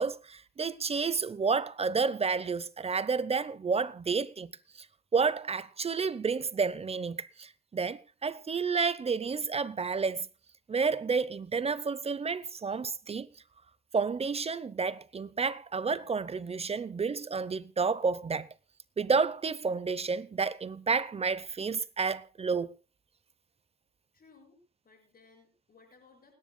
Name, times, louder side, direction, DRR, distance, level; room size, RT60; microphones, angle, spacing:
voice 1, 0.0-4.5 4.8-4.9 5.1-10.3 10.7-13.3 13.9-18.5 19.0-22.7, right 5 dB, 30° right, 0.8 m, -30 dB
voice 2, 24.1-26.4, left 4 dB, 45° left, 6.7 m, -60 dB
29.0 x 10.5 x 2.3 m
cardioid pair, 90°, 20 cm